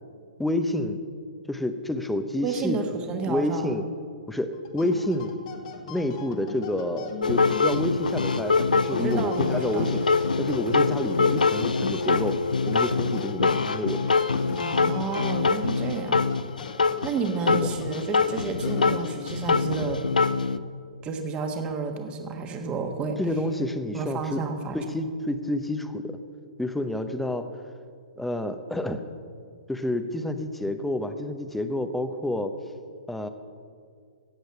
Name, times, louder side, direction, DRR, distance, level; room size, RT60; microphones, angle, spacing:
voice 1, 0.4-1.0 1.5-2.8 3.3-3.9 4.3-5.4 5.9-10.0 10.4-12.4 12.7-14.1 14.5-14.6 23.2-24.4 24.7-26.2 26.6-27.5 28.2-29.0 29.7-32.5 33.1-33.3, left 1 dB, 5° left, 8 dB, 0.8 m, -29 dB
voice 2, 2.4-3.7 8.9-9.9 14.6-16.3 17.0-20.0 21.0-23.2 23.9-24.8, right 5 dB, 25° right, 5 dB, 1.6 m, -31 dB
sound 1, 4.5-19.5, left 5 dB, 50° left, 1.7 m, -41 dB
sound 2, 7.2-20.6, left 4 dB, 85° left, 0.5 m, -24 dB
16.0 x 8.1 x 5.8 m, 2.2 s
hypercardioid pair, 125°, 4 cm